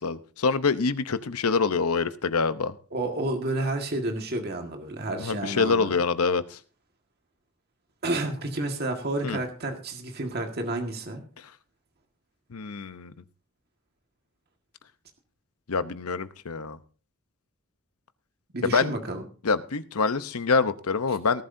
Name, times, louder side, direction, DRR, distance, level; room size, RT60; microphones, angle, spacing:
voice 1, 0.0-2.7 5.2-6.6 9.2-9.4 12.5-13.1 15.7-16.8 18.6-18.9 19.4-21.4, left 4 dB, 85° left, 12 dB, 0.8 m, -25 dB
voice 2, 2.9-5.9 8.0-11.2 18.5-19.2, right 2 dB, 45° right, 3 dB, 1.8 m, -30 dB
18.5 x 11.5 x 2.7 m, 0.39 s
head